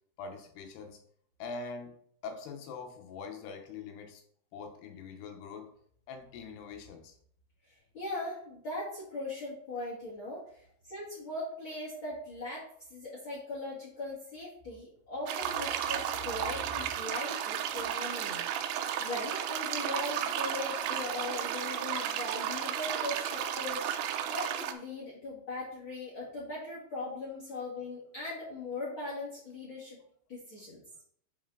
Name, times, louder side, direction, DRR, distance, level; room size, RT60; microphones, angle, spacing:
voice 1, 0.2-1.0 1.4-1.9 2.2-4.2 4.5-5.7 6.1-7.2 24.2-24.3 27.5-27.6, left 4 dB, 85° left, 4 dB, 2.9 m, -43 dB
voice 2, 7.6-30.0 30.3-30.8, left 2 dB, 50° left, -5 dB, 1.5 m, -40 dB
sound 1, 15.3-24.7, right 9 dB, 85° right, 2.5 m, -33 dB
11.0 x 4.0 x 3.7 m, 0.65 s
omnidirectional pair, 4.9 m